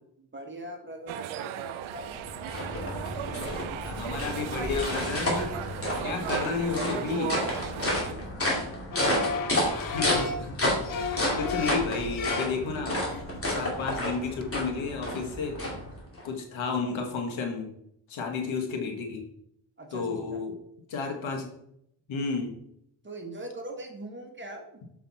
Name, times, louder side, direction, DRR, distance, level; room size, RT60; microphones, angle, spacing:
voice 1, 0.2-2.2 6.2-7.4 7.9-8.2 19.8-20.4 23.0-24.8, right 1 dB, 25° right, 2 dB, 1.5 m, -42 dB
sound 1, 1.1-8.1, right 12 dB, 85° right, 0.6 m, -37 dB
sound 2, 1.8-16.3, left 1 dB, 30° left, 2.8 m, -31 dB
voice 2, 3.8-5.5 6.0-7.4 9.7-10.6 10.9-13.0 13.5-15.6 16.2-17.7 18.1-19.2 19.9-20.5 20.9-21.5 22.1-22.5, left 4 dB, 75° left, 3 dB, 1.7 m, -32 dB
sound 3, 8.9-10.4 10.8-12.8 13.1-13.5 13.8-13.9 14.1-14.4, left 5 dB, 45° left, 0.8 m, -34 dB
7.1 x 5.3 x 4.2 m, 0.74 s
cardioid pair, 100°, 47 cm